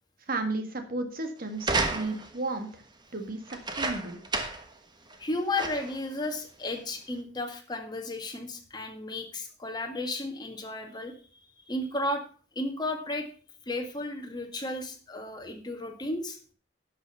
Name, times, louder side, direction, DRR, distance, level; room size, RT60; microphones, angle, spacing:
voice 1, 0.3-2.7 3.1-4.2, right 2 dB, 50° right, 6 dB, 1.8 m, -33 dB
sound 1, 1.6-2.4 3.5-4.7 5.1-5.2 5.6-6.0 6.8-6.9, right 3 dB, 25° right, 1.2 m, -31 dB
voice 2, 5.2-11.4 11.7-12.2 12.6-13.3 13.7-16.4, left 2 dB, 25° left, 4 dB, 1.8 m, -33 dB
11.0 x 6.1 x 5.6 m, 0.41 s
head